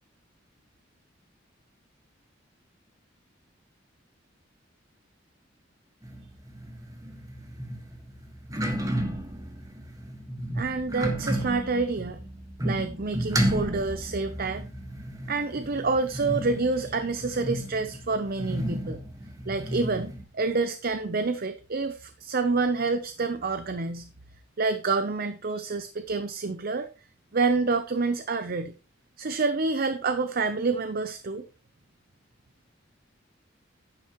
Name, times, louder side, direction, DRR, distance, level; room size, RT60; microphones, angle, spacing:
sound 1, 6.0-20.2, right 1 dB, 20° right, 1.6 m, -33 dB
voice 1, 10.6-12.2 12.6-14.6 15.3-19.0 19.5-24.1 24.6-26.9 27.3-28.7 29.2-31.5, right 3 dB, 50° right, 10 dB, 0.7 m, -28 dB
11.0 x 10.0 x 3.0 m, 0.32 s
head